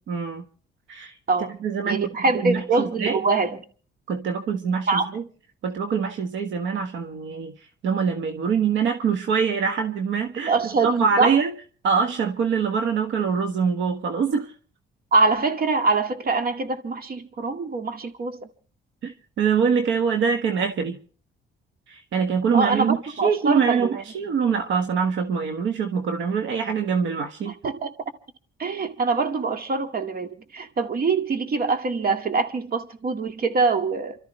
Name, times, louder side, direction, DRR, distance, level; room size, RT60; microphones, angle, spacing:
voice 1, 0.1-0.4 0.9-1.2 1.6-2.1 2.3-3.2 4.1-5.2 5.6-7.5 7.8-11.5 11.8-14.5 19.0-21.0 21.9-27.5, right 6 dB, 75° right, 1.5 m, -24 dB
voice 2, 1.9-3.6 4.9-5.0 10.5-11.4 15.1-18.5 22.5-24.0 27.6-27.9 28.6-34.2, right 4 dB, 50° right, 2.0 m, -24 dB
29.0 x 13.0 x 3.3 m
cardioid pair, 90°, 20 cm